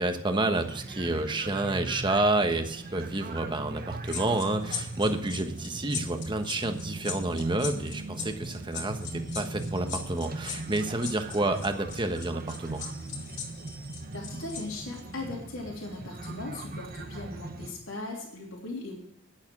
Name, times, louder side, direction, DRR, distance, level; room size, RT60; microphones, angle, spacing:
voice 1, 0.0-12.8, right 2 dB, 25° right, 6 dB, 1.2 m, -29 dB
sound 1, 0.5-17.7, right 2 dB, 45° right, 1.0 m, -40 dB
sound 2, 4.1-14.6 14.9-15.1, left 7 dB, 55° left, 3.3 m, -38 dB
voice 2, 14.1-19.0, left 2 dB, 75° left, -3 dB, 3.1 m, -38 dB
10.5 x 8.7 x 6.2 m, 0.76 s
head